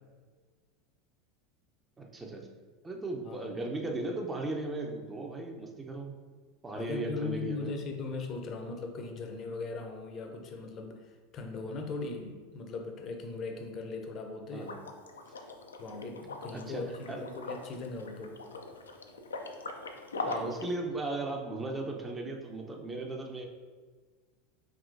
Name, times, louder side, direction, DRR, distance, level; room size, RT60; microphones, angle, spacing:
voice 1, 2.0-2.5 2.8-6.1 6.6-7.7 14.5-14.8 16.5-17.2 20.2-23.5, right 2 dB, 20° right, 2 dB, 0.7 m, -37 dB
voice 2, 3.2-3.8 6.7-14.7 15.8-18.4, left 3 dB, 40° left, 4 dB, 0.6 m, -39 dB
Liquid, 14.6-20.7, left 3 dB, 80° left, 0.4 m, -41 dB
4.8 x 3.1 x 2.6 m, 1.5 s
figure-of-eight pair, 85°, 0 cm